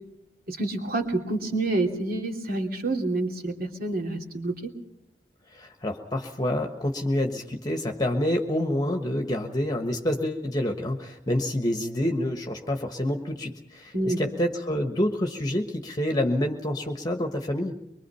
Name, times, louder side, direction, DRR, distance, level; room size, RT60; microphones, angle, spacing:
voice 1, 0.5-4.7 13.9-14.2, right 2 dB, 55° right, 3 dB, 3.0 m, -28 dB
voice 2, 5.5-17.7, left 1 dB, 20° left, 4 dB, 1.3 m, -27 dB
23.5 x 23.5 x 5.7 m, 0.81 s
head